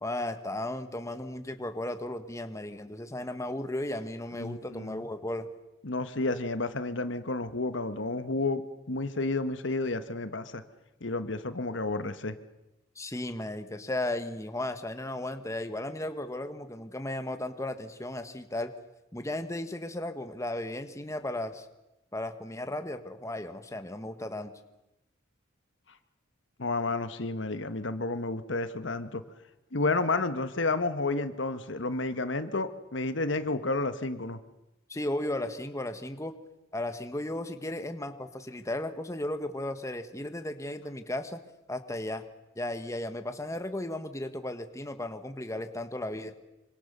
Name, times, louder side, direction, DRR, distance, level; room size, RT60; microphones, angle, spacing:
voice 1, 0.0-5.5 13.0-18.7 19.1-21.7 22.1-24.5 34.9-36.4 36.7-41.4 41.7-42.2 42.6-46.3, left 1 dB, 15° left, 9 dB, 1.3 m, -35 dB
voice 2, 4.3-5.0 5.8-8.6 8.9-10.6 11.0-12.3 26.6-29.2 29.7-34.4, left 3 dB, 65° left, 11 dB, 1.3 m, -31 dB
26.0 x 25.0 x 6.7 m, 0.97 s
head